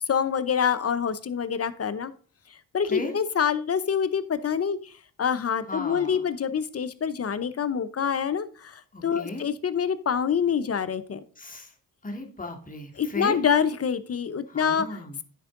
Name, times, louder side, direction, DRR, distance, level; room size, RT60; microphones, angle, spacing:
voice 1, 0.1-2.1 2.7-4.9 5.2-11.2 13.0-15.2, left 7 dB, 35° left, 14 dB, 0.7 m, -26 dB
voice 2, 5.7-6.2 8.9-9.4 11.4-11.7 12.0-13.4 14.5-15.2, left 2 dB, 20° left, 2 dB, 1.9 m, -35 dB
10.0 x 4.6 x 3.7 m, 0.41 s
hypercardioid pair, 45°, 41 cm